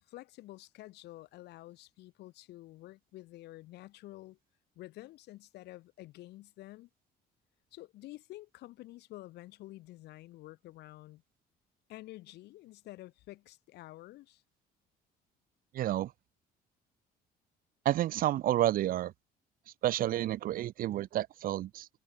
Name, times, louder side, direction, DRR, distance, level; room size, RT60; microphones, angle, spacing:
voice 1, 0.0-4.4 4.8-6.9 7.7-11.2 11.9-14.4, left 17 dB, 80° left, 3.4 m, -49 dB
voice 2, 15.7-16.1 17.8-19.1 19.8-21.9, right 13 dB, 55° right, 0.6 m, -30 dB
cardioid pair, 110°, 17 cm